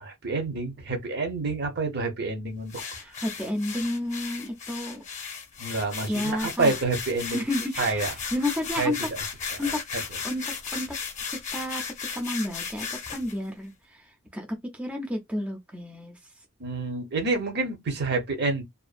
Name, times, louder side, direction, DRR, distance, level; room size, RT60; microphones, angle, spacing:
voice 1, 0.0-2.8 5.6-7.4 7.8-8.1 8.8-8.9 9.6-9.7 16.6-18.6, right 3 dB, 50° right, 0.7 m, -28 dB
sound 1, 2.7-13.4, left 6 dB, 35° left, 0.7 m, -35 dB
voice 2, 2.9-5.0 6.1-6.7 7.2-9.0 9.6-9.8 10.2-11.0 11.3-11.8 12.1-16.2, left 1 dB, 5° right, 0.4 m, -31 dB
2.5 x 2.2 x 2.4 m
head